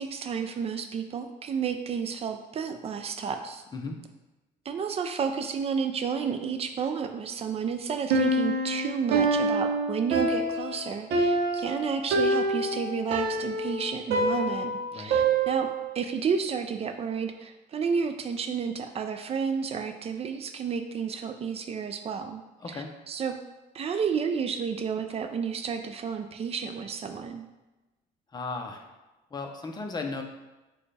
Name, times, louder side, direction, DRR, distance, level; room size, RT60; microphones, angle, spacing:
voice 1, 0.0-3.6 4.7-15.7 15.9-22.4 22.7-23.4 23.7-27.4, right 6 dB, 35° right, 7 dB, 0.4 m, -31 dB
Piano, 8.1-16.0, right 2 dB, 75° right, 0.7 m, -26 dB
voice 2, 28.3-28.9 29.3-30.2, left 3 dB, 25° left, 3 dB, 0.6 m, -35 dB
6.2 x 2.3 x 3.3 m, 1.1 s
cardioid pair, 110°, 17 cm